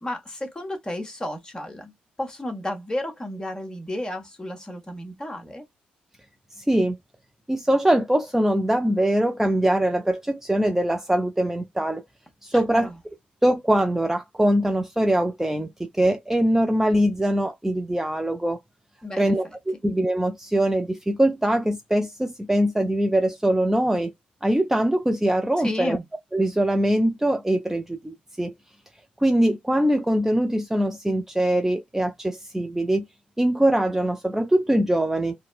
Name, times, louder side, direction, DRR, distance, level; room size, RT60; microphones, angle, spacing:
voice 1, 0.0-1.9 2.2-5.6 12.5-12.9 19.0-19.3 25.6-26.0, left 1 dB, 20° left, 1.5 m, -32 dB
voice 2, 7.5-12.0 12.4-12.9 13.4-18.6 19.2-24.1 24.4-26.0 26.3-28.5 29.2-33.0 33.4-35.3, right 1 dB, 10° right, 0.6 m, -22 dB
4.0 x 2.2 x 2.4 m
hypercardioid pair, 40°, 4 cm